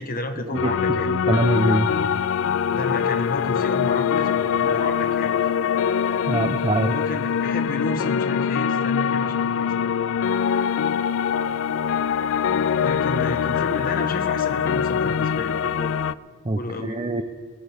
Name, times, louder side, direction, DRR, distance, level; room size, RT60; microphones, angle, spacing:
voice 1, 0.0-1.1 2.7-5.5 6.9-9.9 12.8-16.0 16.5-17.0, left 2 dB, 40° left, 7 dB, 1.1 m, -31 dB
sound 1, 0.5-16.1, left 7 dB, 65° left, 0.3 m, -23 dB
voice 2, 0.6-1.9 6.3-6.9 16.4-17.2, right 2 dB, 25° right, 7 dB, 0.6 m, -23 dB
21.0 x 15.5 x 3.5 m, 1.5 s
head